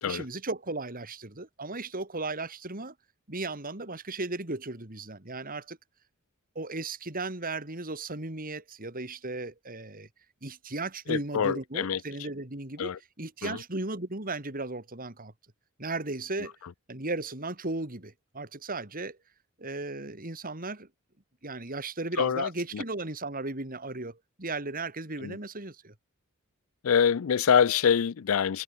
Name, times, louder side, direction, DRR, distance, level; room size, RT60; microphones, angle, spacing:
voice 1, 0.0-2.9 3.3-5.8 6.5-10.1 10.4-15.3 15.8-16.5 16.9-19.2 19.6-20.9 21.4-25.9, right 2 dB, 40° right, 3.2 m, -36 dB
voice 2, 11.1-12.0 12.8-13.0 13.4-13.6 22.2-22.8 25.2-25.4 26.8-28.6, left 7 dB, 70° left, 0.4 m, -25 dB
head